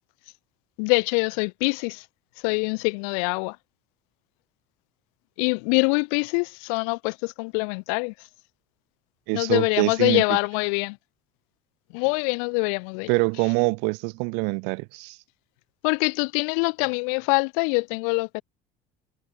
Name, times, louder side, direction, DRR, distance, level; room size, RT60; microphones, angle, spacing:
voice 1, 0.8-2.0 2.4-3.6 5.4-8.1 9.3-11.0 11.9-13.1 15.8-18.4, left 39 dB, 85° left, 1.7 m, -24 dB
voice 2, 9.3-10.2 13.1-15.2, right 38 dB, 75° right, 1.6 m, -25 dB
cardioid pair, 160°, 18 cm